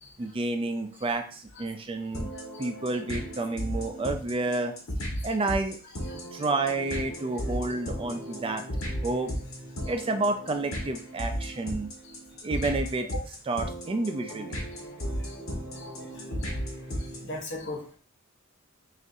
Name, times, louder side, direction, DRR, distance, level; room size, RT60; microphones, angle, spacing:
voice 1, 0.2-2.3 2.6-4.7 5.2-5.8 6.1-8.6 9.0-9.3 9.8-11.9 12.4-13.1 13.5-14.6, right 2 dB, 25° right, 6 dB, 0.3 m, -30 dB
sound 1, 2.1-17.4, equal, 85° left, 1.3 m, -35 dB
voice 2, 15.7-16.2 17.0-18.0, left 2 dB, 55° left, 0 dB, 1.1 m, -39 dB
6.0 x 2.5 x 2.6 m, 0.41 s
head